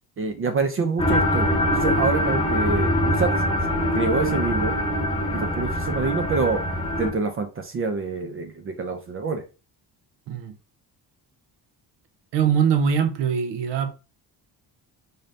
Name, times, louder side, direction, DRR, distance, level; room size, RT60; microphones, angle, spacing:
voice 1, 0.2-3.3 3.9-4.7 5.3-6.6 7.0-9.4, right 4 dB, 35° right, 0.4 m, -26 dB
sound 1, 1.0-7.1, left 1 dB, 10° left, 0.7 m, -23 dB
voice 2, 12.3-13.9, right 7 dB, 80° right, 0.7 m, -22 dB
4.0 x 2.6 x 3.2 m
cardioid pair, 170°, 42 cm